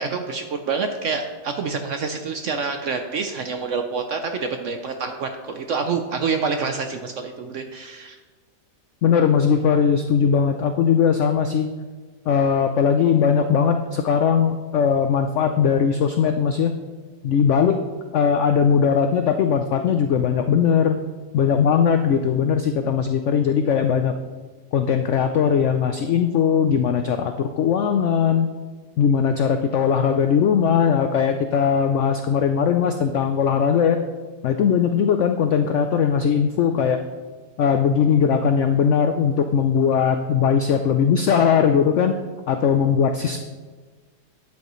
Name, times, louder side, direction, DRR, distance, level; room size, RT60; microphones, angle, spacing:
voice 1, 0.0-8.2, right 5 dB, 65° right, 6 dB, 0.7 m, -27 dB
voice 2, 9.0-11.7 12.3-16.7 17.2-17.8 18.1-21.0 21.3-24.1 24.7-28.5 29.0-34.0 34.4-37.0 37.6-42.1 42.5-43.4, left 7 dB, 85° left, 7 dB, 0.6 m, -19 dB
12.0 x 7.9 x 3.1 m, 1.4 s
omnidirectional pair, 1.8 m